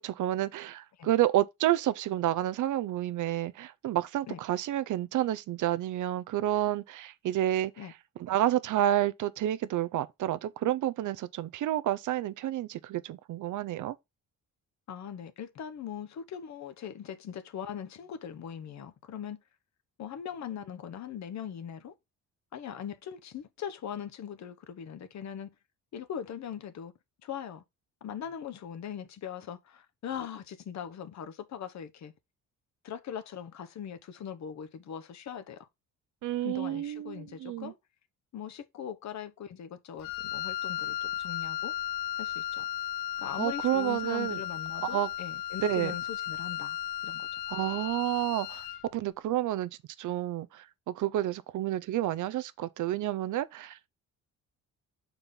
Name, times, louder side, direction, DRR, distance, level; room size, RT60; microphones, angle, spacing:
voice 1, 0.0-7.7 8.2-13.9 36.2-37.7 43.4-44.4 44.8-45.1 45.6-45.9 47.5-48.7 48.9-49.7 50.0-53.9, right 13 dB, 65° right, 0.6 m, -30 dB
voice 2, 14.9-19.4 20.0-21.9 22.5-25.5 25.9-26.9 27.2-27.6 28.0-32.1 32.8-35.7 36.4-37.8 38.3-41.8 42.2-42.7 43.2-46.8 47.0-47.3, left 8 dB, 55° left, 1.0 m, -40 dB
Wind instrument woodwind instrument, 40.0-48.9, left 12 dB, 75° left, 0.6 m, -35 dB
5.5 x 4.5 x 5.2 m
cardioid pair, 105°, 34 cm